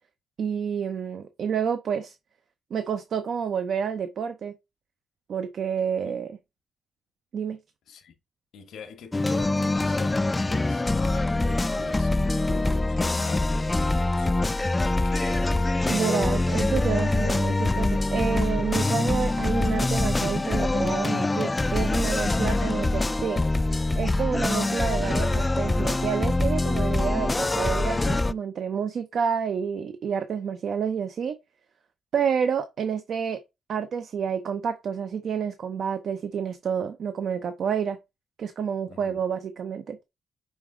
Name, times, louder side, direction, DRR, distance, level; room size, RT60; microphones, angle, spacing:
voice 1, 0.4-2.2 2.7-4.6 5.3-6.4 7.3-7.6 15.9-23.4 23.9-31.4 32.1-33.4 33.7-38.0 38.4-40.0, right 7 dB, 65° right, 0.6 m, -29 dB
voice 2, 8.5-14.6 14.9-15.5 22.2-22.8 38.9-39.2, left 5 dB, 75° left, 1.1 m, -42 dB
sound 1, 9.1-28.3, left 2 dB, 20° left, 0.3 m, -24 dB
5.3 x 4.9 x 3.7 m
cardioid pair, 85°, 0 cm